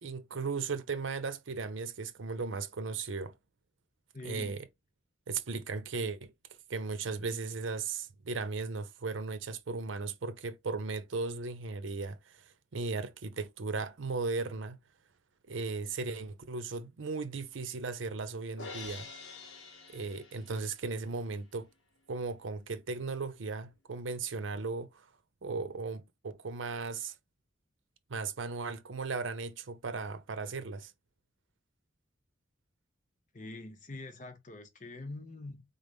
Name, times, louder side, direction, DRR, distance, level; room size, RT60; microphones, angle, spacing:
voice 1, 0.0-3.3 4.2-4.6 5.3-6.3 6.7-12.2 12.7-14.8 15.5-19.1 19.9-21.7 22.1-25.1 25.4-27.1 28.1-30.9, right 4 dB, 85° right, 0.7 m, -36 dB
voice 2, 4.1-4.6 33.3-35.6, left 2 dB, 40° left, 0.8 m, -44 dB
Crash cymbal, 18.6-20.9, left 4 dB, 80° left, 1.2 m, -46 dB
3.9 x 3.8 x 3.5 m
head